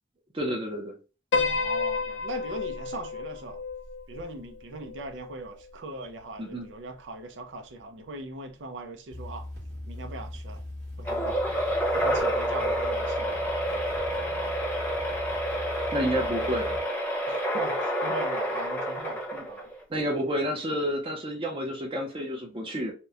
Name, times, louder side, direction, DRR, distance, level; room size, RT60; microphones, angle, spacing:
voice 1, 0.3-0.9 6.4-6.7 15.9-16.8 19.3-19.4 19.9-22.9, equal, 30° right, 0.5 m, -30 dB
Piano, 1.3-5.7, left 4 dB, 85° left, 0.4 m, -31 dB
voice 2, 1.4-3.6 4.1-9.5 9.9-10.6 11.0-11.5 11.9-13.4 17.3-19.7, right 2 dB, 90° right, 0.5 m, -40 dB
sound 1, 9.1-16.8, left 1 dB, 65° right, 1.1 m, -40 dB
sound 2, 11.0-19.8, equal, 10° left, 0.7 m, -29 dB
2.9 x 2.1 x 2.3 m
head